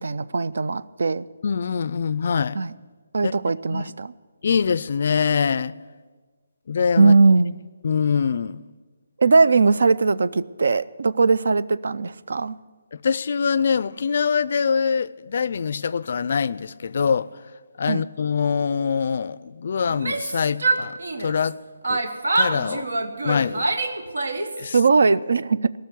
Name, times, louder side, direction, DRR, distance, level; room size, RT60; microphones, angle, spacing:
voice 1, 0.0-1.3 2.5-2.7 3.1-4.1 7.0-7.6 9.2-12.6 17.9-18.0 24.7-25.7, right 4 dB, 70° right, 0.4 m, -19 dB
voice 2, 1.4-2.6 3.2-3.3 3.7-3.8 4.4-5.7 6.7-7.1 7.8-8.6 12.9-17.3 17.8-21.6 21.8-22.0 22.4-22.9 23.2-23.7 24.6-24.8, left 6 dB, 50° left, 0.4 m, -24 dB
Yell, 19.9-21.5 21.8-24.7, right 3 dB, 90° right, 1.2 m, -25 dB
17.5 x 6.4 x 8.3 m
hypercardioid pair, 170°, 0 cm